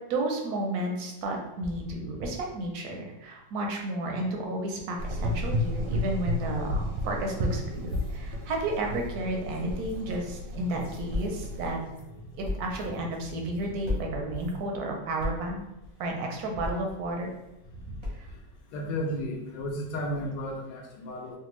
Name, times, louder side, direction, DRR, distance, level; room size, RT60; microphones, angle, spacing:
voice 1, 0.1-11.8 12.4-15.6 16.0-17.3 18.1-18.3, right 2 dB, 70° right, 1 dB, 0.9 m, -32 dB
Gurgling / Engine, 5.0-11.7, left 1 dB, 85° right, 1.3 m, -33 dB
sound 1, 7.3-14.6, equal, 45° left, 1.5 m, -46 dB
sound 2, 9.3-18.7, left 2 dB, 45° right, 0.3 m, -40 dB
voice 2, 18.7-21.4, equal, 80° left, 1 dB, 1.3 m, -33 dB
3.4 x 2.2 x 3.0 m, 0.97 s
omnidirectional pair, 2.0 m